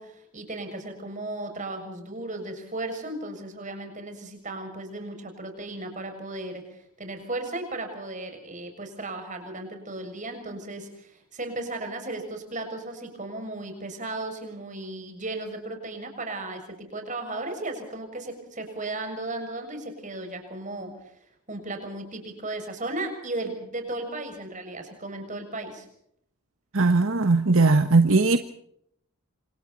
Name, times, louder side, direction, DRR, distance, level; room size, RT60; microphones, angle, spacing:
voice 1, 0.0-20.9 21.5-25.9, right 2 dB, 35° right, 5 dB, 6.8 m, -35 dB
voice 2, 26.7-28.4, right 3 dB, 65° right, 8 dB, 1.3 m, -19 dB
28.0 x 27.5 x 4.2 m, 0.70 s
head